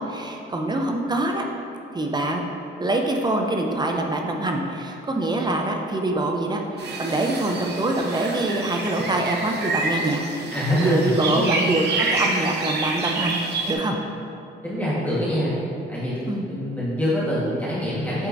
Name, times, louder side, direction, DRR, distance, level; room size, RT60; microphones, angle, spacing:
voice 1, 0.1-1.5 1.9-2.4 2.8-10.2 10.7-13.4 13.7-14.0 16.3-16.5, right 2 dB, 20° right, 2 dB, 0.6 m, -24 dB
sound 1, 6.8-13.7, right 3 dB, 55° right, 0.9 m, -28 dB
voice 2, 10.5-11.6 14.6-15.5 15.9-16.1 16.5-18.3, equal, 10° left, -9 dB, 1.4 m, -25 dB
8.2 x 4.3 x 2.6 m, 2.7 s
cardioid pair, 90°, 20 cm